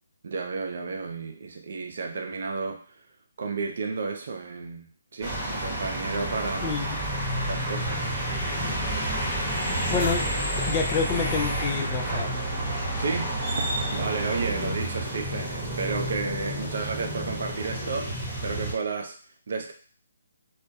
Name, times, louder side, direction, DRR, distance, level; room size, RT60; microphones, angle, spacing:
voice 1, 0.2-3.0 3.4-6.8 7.5-8.1 13.0-13.6 13.9-19.2 19.5-19.7, right 4 dB, 60° right, 3 dB, 0.5 m, -32 dB
sound 1, 5.2-18.7, right 1 dB, 15° right, 1.0 m, -30 dB
voice 2, 6.6-7.0 9.7-10.3 10.6-12.3, left 5 dB, 20° left, 1 dB, 0.4 m, -28 dB
2.3 x 2.1 x 2.7 m, 0.43 s
hypercardioid pair, 150°, 0 cm